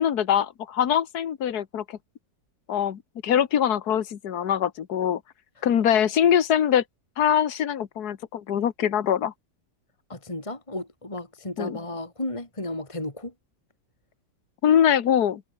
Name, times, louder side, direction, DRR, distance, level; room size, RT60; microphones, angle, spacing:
voice 1, 0.0-2.0 2.7-5.2 5.6-6.8 7.2-9.3 11.6-11.8 14.6-15.4, left 9 dB, 65° left, 1.8 m, -23 dB
voice 2, 10.1-13.3, left 1 dB, 15° left, 3.0 m, -33 dB
omnidirectional pair, 1.9 m